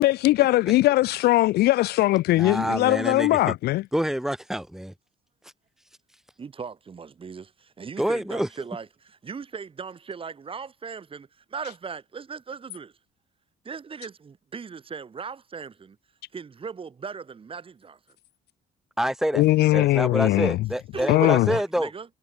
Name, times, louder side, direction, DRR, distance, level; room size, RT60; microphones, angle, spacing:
voice 1, 0.0-3.8 19.3-20.6 21.1-21.5, left 17 dB, 75° left, 0.6 m, -20 dB
voice 2, 2.4-3.4 3.9-4.9 8.0-8.7 19.0-19.4 19.7-21.9, equal, ahead, 4.6 m, -27 dB
voice 3, 6.4-8.8 9.2-12.9 13.6-16.0 16.3-18.0 20.9-22.1, right 5 dB, 30° right, 5.1 m, -38 dB
cardioid pair, 110°, 17 cm